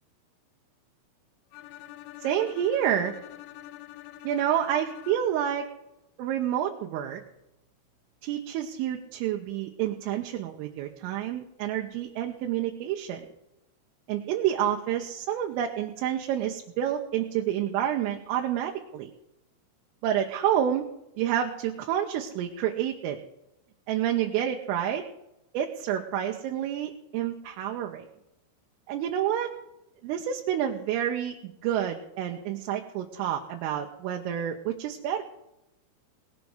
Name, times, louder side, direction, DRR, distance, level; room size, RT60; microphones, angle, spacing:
Bowed string instrument, 1.5-5.5, left 15 dB, 85° left, 3.2 m, -46 dB
voice 1, 2.2-3.1 4.2-5.7 6.2-7.2 8.2-13.3 14.1-19.1 20.0-20.8 21.2-23.2 23.9-25.0 25.5-28.1 28.9-29.5 30.0-35.2, right 10 dB, 80° right, 1 dB, 3.6 m, -29 dB
19.0 x 7.2 x 6.4 m, 0.88 s
omnidirectional pair, 5.9 m